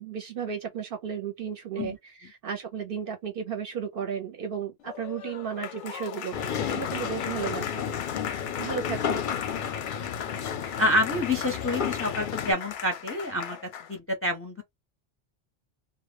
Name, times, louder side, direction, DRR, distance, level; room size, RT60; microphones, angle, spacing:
voice 1, 0.0-7.9 8.6-9.3, right 7 dB, 60° right, 0.7 m, -34 dB
Applause, 4.8-14.0, left 8 dB, 90° left, 0.9 m, -38 dB
sound 1, 6.3-12.5, left 7 dB, 60° left, 0.6 m, -32 dB
voice 2, 10.8-13.6 13.9-14.6, left 1 dB, 15° left, 0.5 m, -27 dB
2.1 x 2.1 x 3.2 m
omnidirectional pair, 1.2 m